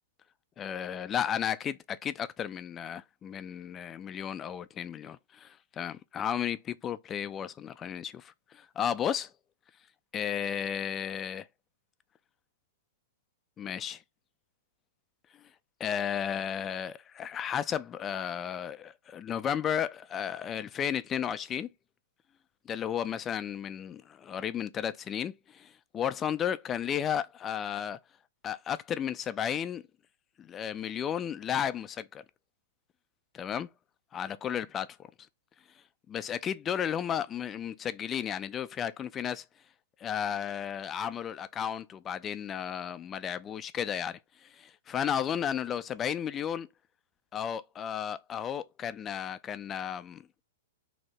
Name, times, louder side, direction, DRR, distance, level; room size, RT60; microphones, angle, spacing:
voice 1, 0.6-9.3 10.1-11.5 13.6-14.0 15.8-21.7 22.7-28.0 28.4-29.8 30.4-32.2 33.3-33.7 34.1-35.0 36.1-39.4 40.0-46.7 47.3-50.2, left 9 dB, 25° left, 0.3 m, -33 dB
2.7 x 2.1 x 3.2 m
hypercardioid pair, 115°, 0 cm